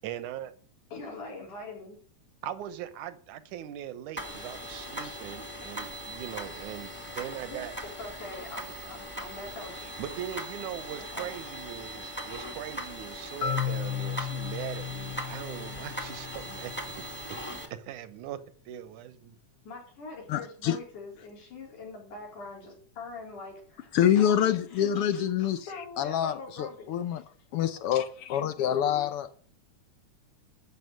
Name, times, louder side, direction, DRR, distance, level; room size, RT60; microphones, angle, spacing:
voice 1, 0.0-0.5 2.4-7.7 10.0-16.7 17.9-18.4 18.7-19.3, right 11 dB, 80° right, 2.5 m, -40 dB
voice 2, 0.9-2.0 5.0-5.2 7.5-9.9 10.8-11.4 19.6-27.2, left 3 dB, 90° left, 5.7 m, -43 dB
sound 1, 4.2-17.7, equal, 5° left, 1.7 m, -40 dB
Marimba xylophone, 13.4-17.3, left 8 dB, 55° left, 1.9 m, -35 dB
voice 3, 20.3-20.8 23.9-25.7 26.0-27.2 27.5-29.3, left 10 dB, 70° left, 1.4 m, -26 dB
12.5 x 7.8 x 6.6 m
omnidirectional pair, 3.4 m